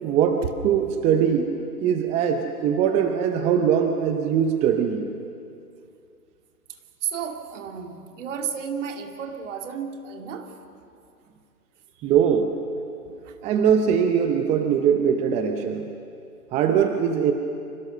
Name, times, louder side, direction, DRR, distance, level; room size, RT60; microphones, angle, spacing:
voice 1, 0.0-1.5 1.8-5.1 12.0-12.5 13.4-15.9 16.5-17.3, right 8 dB, 15° right, 6 dB, 0.8 m, -21 dB
voice 2, 7.0-10.5 13.2-13.3, right 7 dB, 50° right, 5 dB, 2.7 m, -32 dB
29.5 x 25.0 x 6.7 m, 2.5 s
hypercardioid pair, 135°, 47 cm